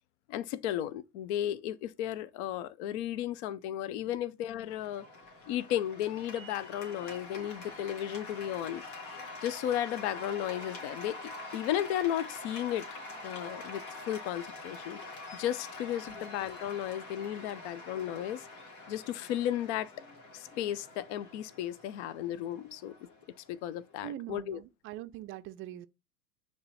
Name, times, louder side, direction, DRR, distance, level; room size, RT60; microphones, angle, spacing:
voice 1, 0.3-5.1 5.5-8.8 9.4-12.9 13.2-15.0 15.3-18.5 18.9-19.9 20.3-22.9 23.5-24.6, left 11 dB, 45° left, 0.7 m, -34 dB
Cheering / Applause, 4.7-23.9, left 2 dB, 60° left, 2.6 m, -46 dB
voice 2, 24.0-25.9, right 13 dB, 25° right, 0.5 m, -43 dB
9.4 x 3.5 x 4.2 m
figure-of-eight pair, 85°, 49 cm